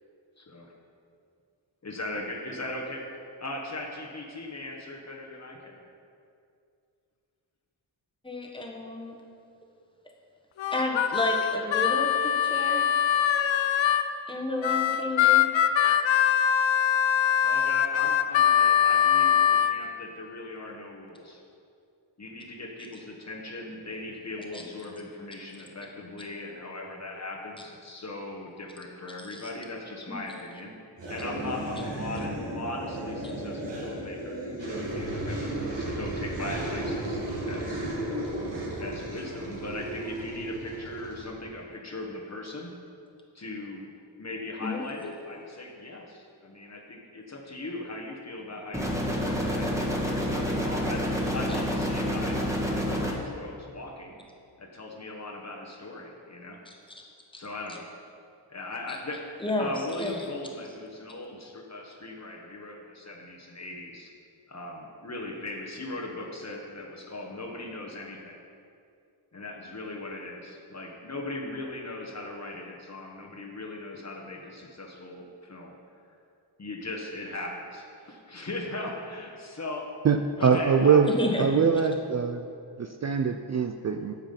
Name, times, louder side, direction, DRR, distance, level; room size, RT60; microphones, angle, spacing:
voice 1, 0.4-0.7 1.8-3.0 3.4-5.8 17.4-21.4 22.2-30.7 31.1-37.2 37.5-38.2 38.8-42.7 43.3-43.9 44.2-51.0 51.3-54.2 54.6-56.6 57.4-57.9 58.5-64.1 64.5-68.4 69.3-75.7 76.6-79.9 80.4-81.0, left 2 dB, 35° left, -1 dB, 1.3 m, -39 dB
voice 2, 8.2-9.1 10.7-12.9 14.3-15.5 24.5-24.6 29.3-29.4 30.1-30.2 44.6-44.8 56.7-57.1 59.4-59.7 60.0-60.2 81.0-81.5, left 1 dB, 10° left, 0 dB, 1.4 m, -31 dB
Harmonica, 10.6-14.1 14.6-19.7, left 9 dB, 85° left, 0.6 m, -23 dB
sound 1, 31.0-41.3, right 1 dB, 75° right, 2.3 m, -34 dB
sound 2, 48.7-53.1, equal, 5° right, 1.5 m, -28 dB
voice 3, 80.4-81.1 81.4-82.5 82.8-84.1, right 6 dB, 40° right, 6 dB, 0.4 m, -23 dB
9.3 x 7.3 x 5.3 m, 2.4 s
wide cardioid pair, 90°, 44 cm